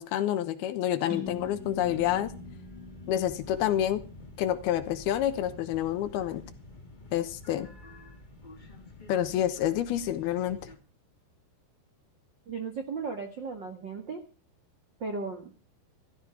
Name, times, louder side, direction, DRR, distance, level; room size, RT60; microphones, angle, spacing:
voice 1, 0.0-2.3 3.1-4.0 4.4-6.4 7.1-7.7 9.1-10.7, left 11 dB, 75° left, 2.8 m, -28 dB
sound 1, 1.1-5.0, left 2 dB, 25° right, 5.8 m, -44 dB
sound 2, 1.2-10.8, left 2 dB, 50° left, 0.5 m, -48 dB
voice 2, 12.5-14.2 15.0-15.5, right 4 dB, 60° right, 1.1 m, -36 dB
15.5 x 14.0 x 4.9 m
omnidirectional pair, 4.9 m